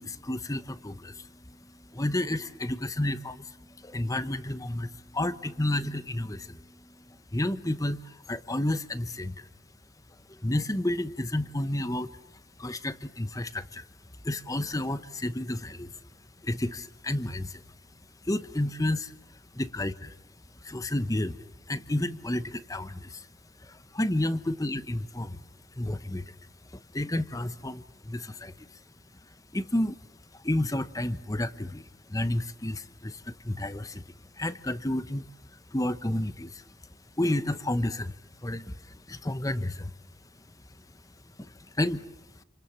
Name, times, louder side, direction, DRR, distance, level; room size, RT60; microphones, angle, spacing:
voice 1, 0.0-9.5 10.4-12.1 12.6-13.8 14.2-15.9 16.4-17.6 18.2-19.1 19.5-20.1 20.6-23.3 23.6-25.5 25.8-26.3 26.7-28.7 29.5-30.0 30.3-34.0 34.4-35.2 35.7-36.6 37.2-38.1 38.4-39.9 41.4-42.0, left 1 dB, 15° left, 13 dB, 1.0 m, -31 dB
29.0 x 27.0 x 7.3 m, 0.87 s
head